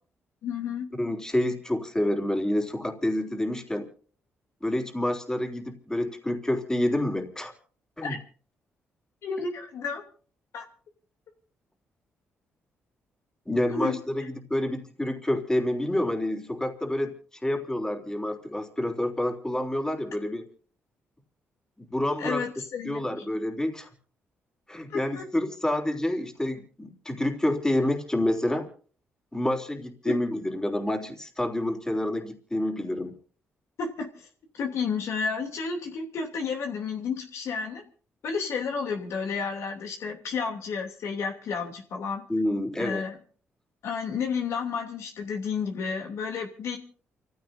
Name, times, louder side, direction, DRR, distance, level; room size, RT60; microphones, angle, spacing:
voice 1, 0.4-0.9 8.0-8.2 9.2-10.0 10.5-10.6 13.7-14.0 22.2-23.2 24.9-25.3 30.0-30.2 33.8-34.1 34.5-37.8 38.2-42.2 42.8-43.2 43.8-46.8, left 5 dB, 75° left, 3 dB, 3.0 m, -31 dB
voice 2, 1.0-3.9 4.6-7.5 8.0-8.2 13.5-17.1 17.4-20.5 21.8-22.4 22.8-23.9 24.7-28.7 29.3-33.2 42.3-43.0, left 1 dB, 15° left, 3 dB, 3.4 m, -28 dB
29.5 x 15.5 x 2.7 m, 0.44 s
cardioid pair, 75°, 5 cm